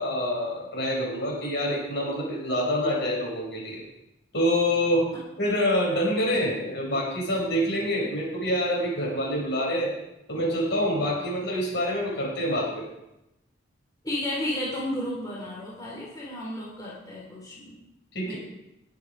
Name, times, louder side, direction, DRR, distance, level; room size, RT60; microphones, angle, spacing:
voice 1, 0.0-3.8 4.3-5.1 5.4-9.9 10.3-12.8 18.1-18.3, equal, 60° left, -2 dB, 6.6 m, -26 dB
voice 2, 14.0-17.8 18.2-18.3, left 1 dB, 20° left, -5 dB, 4.1 m, -33 dB
20.5 x 9.9 x 4.9 m, 0.89 s
head